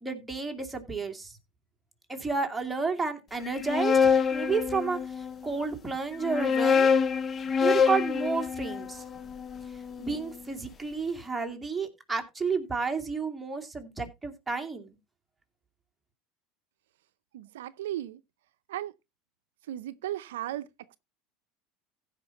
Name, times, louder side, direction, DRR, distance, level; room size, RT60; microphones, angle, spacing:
voice 1, 0.0-1.3 2.1-6.9 7.6-9.0 10.0-14.9, right 4 dB, 10° right, 2.6 m, -31 dB
sound 1, 3.4-5.3 6.1-10.3, left 6 dB, 30° left, 1.0 m, -26 dB
voice 2, 17.3-18.2 18.7-18.9 19.6-21.0, right 13 dB, 85° right, 0.5 m, -36 dB
15.5 x 5.2 x 4.1 m
supercardioid pair, 100°, 0 cm